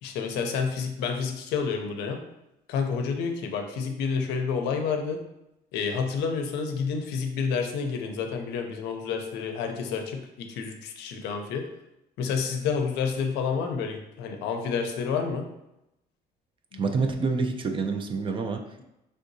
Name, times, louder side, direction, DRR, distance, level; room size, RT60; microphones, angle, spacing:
voice 1, 0.0-2.2 2.7-5.2 5.7-11.6 12.2-15.4 16.7-16.8, left 5 dB, 85° left, 4 dB, 0.5 m, -29 dB
voice 2, 16.7-18.8, right 4 dB, 30° right, 5 dB, 0.4 m, -28 dB
3.4 x 2.7 x 2.6 m, 0.88 s
cardioid pair, 110°, 17 cm